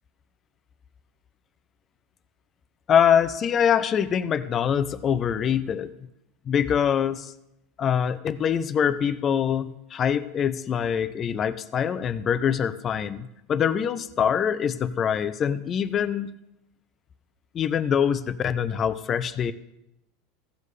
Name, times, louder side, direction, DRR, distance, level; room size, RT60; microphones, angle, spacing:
voice 1, 2.9-5.9 6.5-7.3 7.8-16.3 17.5-19.5, left 8 dB, 30° left, 13 dB, 0.6 m, -24 dB
15.5 x 7.4 x 3.3 m, 0.84 s
supercardioid pair, 140°, 0 cm